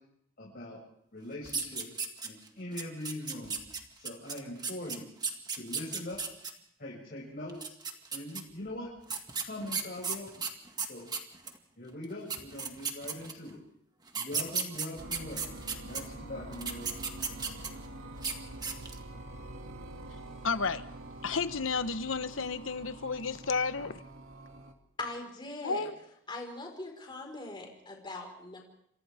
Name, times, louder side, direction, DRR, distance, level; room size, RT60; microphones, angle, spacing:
voice 1, 0.4-0.8 1.1-1.9 2.2-3.6 4.0-5.0 5.5-6.2 6.8-7.7 8.1-8.9 9.4-10.3 10.8-11.1 11.8-13.6 14.1-16.9, left 1 dB, 50° left, -5 dB, 7.3 m, -42 dB
sound 1, 1.4-2.5 2.8-6.5 7.5-8.4 9.1-11.6 12.0-12.1 12.3-13.5 14.1-16.0 16.5-17.9 18.2-18.3 18.6-19.0, right 5 dB, 20° right, 1.9 m, -35 dB
sound 2, 15.0-24.7, right 1 dB, 90° right, 2.5 m, -46 dB
voice 2, 20.4-20.8 21.2-24.0 25.6-25.9, left 4 dB, 80° left, 11 dB, 1.1 m, -32 dB
voice 3, 25.0-25.9 26.3-28.6, left 2 dB, 25° left, 1 dB, 4.9 m, -41 dB
29.0 x 26.5 x 3.6 m, 0.73 s
head